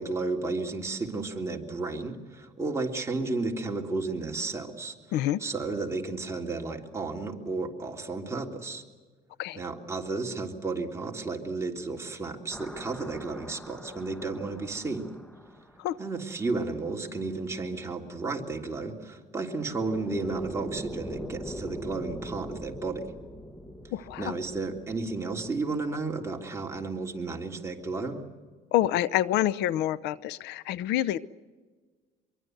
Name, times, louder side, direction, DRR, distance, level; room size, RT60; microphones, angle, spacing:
voice 1, 0.0-4.9 5.4-8.8 9.5-15.1 16.0-23.0 24.2-28.2, right 3 dB, 15° right, 0 dB, 3.3 m, -33 dB
sound 1, 12.5-16.4 19.4-26.6, equal, 5° left, 1.4 m, -42 dB
voice 2, 23.9-24.4 28.7-31.2, left 13 dB, 85° left, 18 dB, 0.7 m, -27 dB
25.0 x 23.5 x 8.0 m, 1.4 s
cardioid pair, 110°, 17 cm